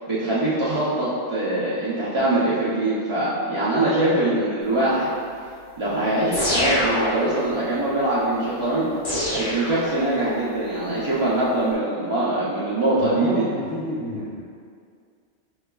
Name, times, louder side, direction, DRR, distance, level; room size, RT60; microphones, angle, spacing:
voice 1, 0.1-5.1 5.8-8.9 9.3-13.4, right 1 dB, 40° right, -11 dB, 0.4 m, -23 dB
sound 1, 6.3-7.6 9.0-10.3, equal, 65° left, 1.3 m, -25 dB
voice 2, 13.0-14.4, left 1 dB, 20° left, -9 dB, 0.5 m, -29 dB
6.3 x 2.3 x 2.2 m, 2.2 s
omnidirectional pair, 1.2 m